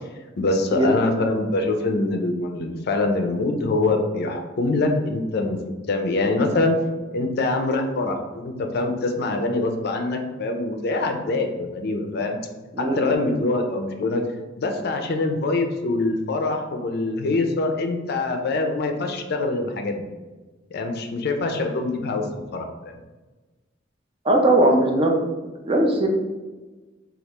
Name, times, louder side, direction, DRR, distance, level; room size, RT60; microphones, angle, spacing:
voice 1, 0.4-5.6 5.9-6.8 7.1-12.4 12.8-14.2 14.6-20.1 20.7-22.3 22.5-22.9, left 2 dB, 55° left, 4 dB, 0.4 m, -24 dB
voice 2, 12.7-13.4 24.2-25.1 25.6-26.1, right 1 dB, 30° right, 1 dB, 0.4 m, -19 dB
3.3 x 2.3 x 2.9 m, 1.2 s
head